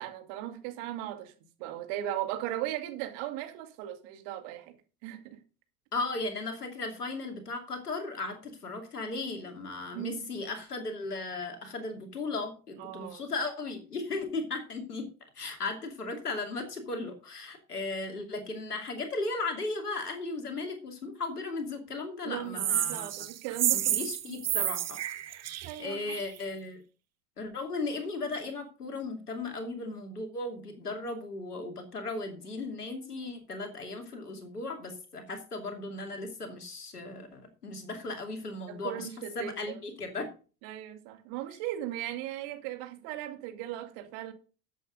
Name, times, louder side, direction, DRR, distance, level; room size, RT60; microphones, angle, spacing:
voice 1, 0.0-1.3 1.6-4.7 5.0-5.4 9.9-10.2 12.8-13.2 22.2-24.0 24.3-24.4 25.3-26.1 38.7-39.8 40.6-44.3, right 13 dB, 55° right, 2.3 m, -37 dB
voice 2, 5.9-15.1 15.3-23.1 23.7-25.0 25.8-26.8 27.4-39.1 39.3-40.3, left 3 dB, 85° left, 2.7 m, -36 dB
sound 1, 22.6-26.4, right 12 dB, 35° right, 1.3 m, -30 dB
13.0 x 8.2 x 3.9 m
figure-of-eight pair, 70°, 45 cm